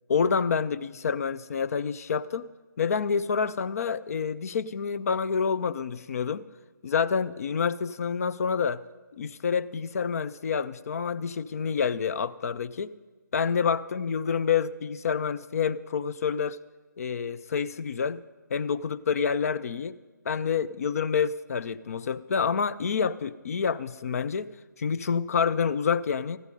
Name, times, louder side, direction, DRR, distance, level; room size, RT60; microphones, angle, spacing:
voice 1, 0.1-2.5 2.8-6.4 6.8-8.8 9.2-12.9 13.3-16.6 17.0-18.2 18.5-19.9 20.3-24.5 24.8-26.4, left 6 dB, 45° left, 15 dB, 0.5 m, -28 dB
14.0 x 12.0 x 5.2 m, 1.2 s
figure-of-eight pair, 145°, 11 cm